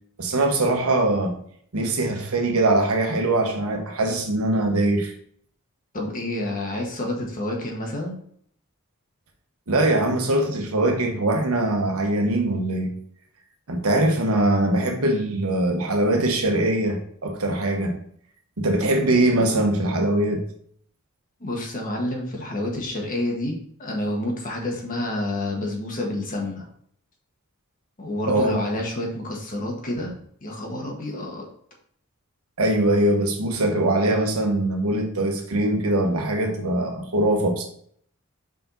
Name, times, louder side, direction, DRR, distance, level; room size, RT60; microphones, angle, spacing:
voice 1, 0.2-1.4 1.7-5.1 9.7-12.9 13.7-18.0 18.6-20.4 28.3-28.6 32.6-37.7, right 1 dB, 80° right, 3 dB, 1.2 m, -22 dB
voice 2, 5.9-8.2 21.4-26.6 28.0-31.5, left 1 dB, 40° left, 0 dB, 1.5 m, -29 dB
5.2 x 4.8 x 4.0 m, 0.63 s
head